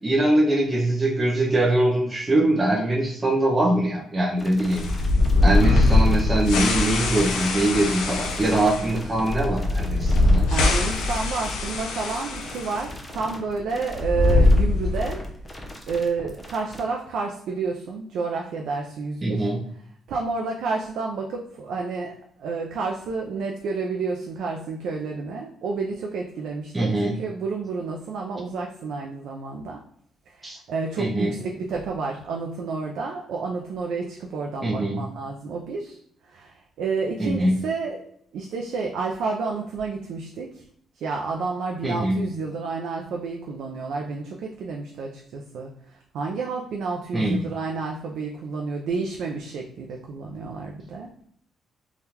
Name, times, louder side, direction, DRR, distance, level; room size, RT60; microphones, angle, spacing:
voice 1, 0.0-4.9 5.4-10.5 19.2-19.6 26.7-27.1 30.4-30.6 31.0-31.3 34.6-35.0 37.2-37.5 41.8-42.2 47.1-47.5, right 1 dB, 20° right, -2 dB, 0.5 m, -22 dB
sound 1, 4.4-16.8, left 1 dB, 20° left, 0.7 m, -41 dB
sound 2, 4.7-12.9 13.1-13.2 13.9-15.2, left 2 dB, 90° left, 0.5 m, -22 dB
voice 2, 10.5-15.2 15.9-19.5 20.1-22.1 22.4-29.8 30.4-36.0 36.3-38.0 38.3-40.6 41.0-45.7 46.1-51.1, right 4 dB, 75° right, 0 dB, 0.3 m, -30 dB
3.5 x 2.3 x 2.8 m, 0.66 s
cardioid pair, 90°, 0 cm